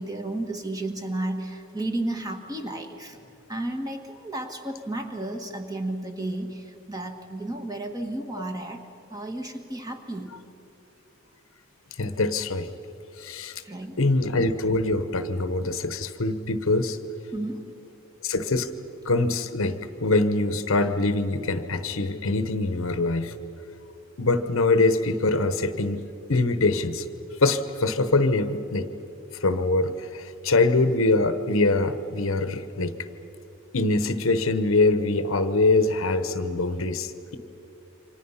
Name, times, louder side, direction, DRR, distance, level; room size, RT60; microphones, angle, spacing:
voice 1, 0.0-3.2 3.5-10.4 13.6-14.0 17.3-17.8, right 1 dB, 15° right, 5 dB, 1.6 m, -33 dB
voice 2, 12.0-12.7 13.2-13.6 14.0-17.0 18.2-18.7 19.0-23.3 24.2-26.0 26.3-27.1 27.4-28.9 29.4-33.0 33.7-37.4, left 2 dB, 65° left, 10 dB, 1.0 m, -23 dB
28.5 x 25.0 x 5.7 m, 2.9 s
head